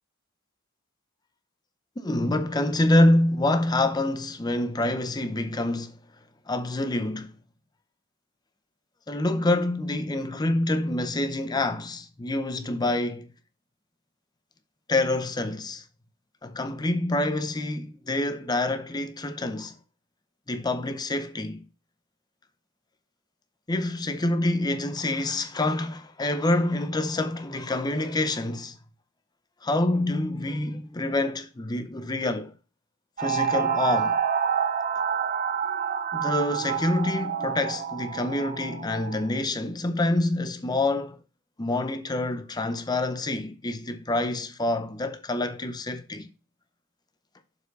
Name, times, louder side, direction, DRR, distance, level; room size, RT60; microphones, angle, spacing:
voice 1, 2.0-6.0 6.5-7.3 9.1-13.3 14.9-15.8 16.4-19.7 20.5-21.6 23.7-28.8 29.6-32.5 33.2-34.2 36.1-41.2 41.6-46.3, left 2 dB, 20° left, 0.5 m, -26 dB
sound 1, 33.2-39.3, right 7 dB, 40° right, 0.5 m, -28 dB
6.9 x 4.6 x 5.2 m
head